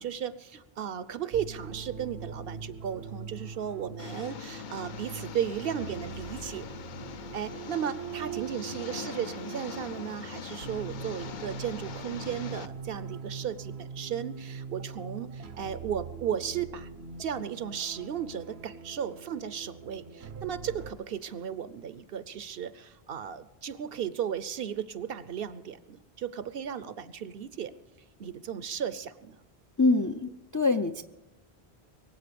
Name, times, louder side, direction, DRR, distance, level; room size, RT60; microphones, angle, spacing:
voice 1, 0.0-6.7 7.3-16.9 17.2-27.7 28.2-29.4, right 8 dB, 65° right, 15 dB, 0.9 m, -35 dB
sound 1, 1.3-20.9, right 6 dB, 85° right, 1.2 m, -42 dB
Engine, 4.0-12.7, left 8 dB, 55° left, 0.7 m, -42 dB
voice 2, 29.8-31.0, left 3 dB, 25° left, 7 dB, 0.4 m, -25 dB
22.5 x 8.2 x 6.9 m, 0.94 s
omnidirectional pair, 1.0 m